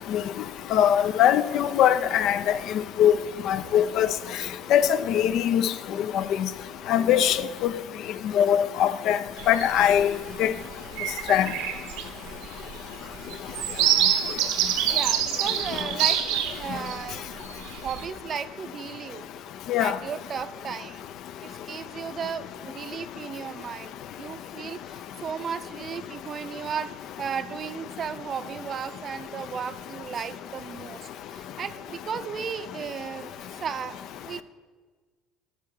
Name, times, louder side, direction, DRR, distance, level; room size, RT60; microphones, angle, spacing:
voice 1, 0.7-2.4 3.0-3.2 3.5-4.1 4.7-5.7 6.1-6.5 6.9-7.4 8.3-9.2 9.5-10.1 10.4-10.5 11.3-11.5 19.7-20.0, left 10 dB, 65° left, 0.4 m, -21 dB
sound 1, 9.4-10.0 10.5-10.6 10.9-16.9 17.4-18.0, right 10 dB, 85° right, 0.8 m, -26 dB
voice 2, 14.9-16.2 16.6-17.3 17.8-19.3 19.8-21.0 21.4-26.9 27.2-33.3 33.6-34.0 34.2-34.4, right 7 dB, 40° right, 0.5 m, -35 dB
11.0 x 3.7 x 6.0 m
supercardioid pair, 100°, 0 cm